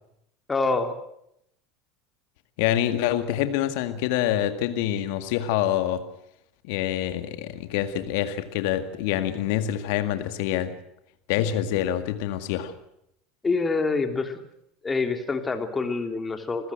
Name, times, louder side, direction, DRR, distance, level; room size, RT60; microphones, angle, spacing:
voice 1, 0.5-0.9 13.4-14.4 14.8-16.7, left 3 dB, 20° left, 6 dB, 3.1 m, -26 dB
voice 2, 2.6-6.0 6.6-10.7 11.3-12.7, left 11 dB, 65° left, 9 dB, 2.0 m, -26 dB
27.0 x 15.5 x 7.8 m, 0.77 s
hypercardioid pair, 75°, 0 cm